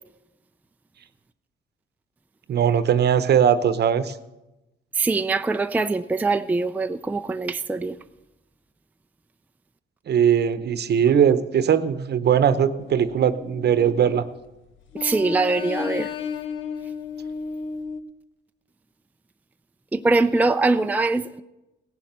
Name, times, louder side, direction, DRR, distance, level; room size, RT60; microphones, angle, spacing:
voice 1, 2.5-4.2 10.1-14.3, right 8 dB, 55° right, 0.9 m, -20 dB
voice 2, 4.9-8.0 14.9-16.1 19.9-21.4, right 3 dB, 10° right, 0.4 m, -23 dB
sound 1, 12.8-14.5 14.9-18.0, left 6 dB, 75° left, 1.0 m, -33 dB
17.0 x 7.4 x 6.7 m
cardioid pair, 90°, 20 cm